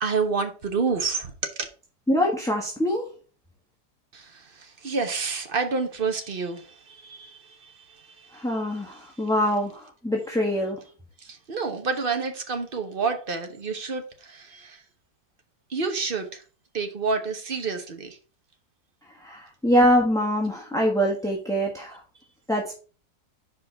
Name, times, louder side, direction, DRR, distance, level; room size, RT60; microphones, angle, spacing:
voice 1, 0.0-1.7 4.1-7.7 8.2-8.3 11.2-14.8 15.7-16.4 16.7-18.2, right 4 dB, 40° right, 1.1 m, -29 dB
voice 2, 2.1-3.1 8.3-10.8 19.2-22.0 22.5-22.8, equal, ahead, 1.0 m, -24 dB
5.1 x 4.7 x 5.7 m
omnidirectional pair, 1.7 m